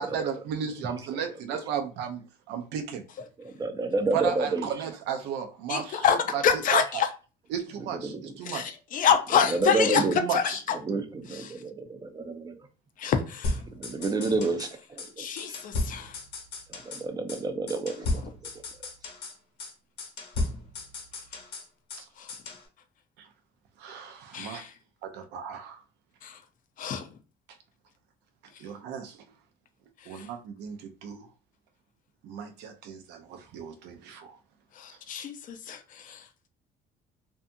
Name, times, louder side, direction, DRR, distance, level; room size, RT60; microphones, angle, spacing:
voice 1, 0.0-2.2 2.5-3.0 4.1-6.1 6.3-6.4 6.7-7.0 7.5-8.7 9.9-10.6 22.0-22.1 23.2-23.3 23.8-24.6 25.0-25.8 28.6-29.2 30.1-31.3 32.2-34.4, right 8 dB, 90° right, 0.5 m, -34 dB
voice 2, 3.4-4.7 7.9-8.3 9.5-10.2 10.8-12.7 13.7-15.6 16.7-18.3, right 3 dB, 25° right, 0.4 m, -30 dB
voice 3, 5.7-7.1 8.4-10.8 11.3-11.6 13.0-13.6 15.2-16.2 22.2-22.3 24.3-24.7 26.2-26.4 26.8-27.1 30.0-30.3 34.7-36.3, left 7 dB, 55° left, 0.5 m, -27 dB
sound 1, 13.4-14.7 15.0-15.1 15.4-17.0 17.3-17.4 17.7-19.3 19.6-19.7 20.0-22.0 22.3-22.6, left 2 dB, 85° left, 1.2 m, -34 dB
2.7 x 2.3 x 2.5 m
cardioid pair, 110°, 17 cm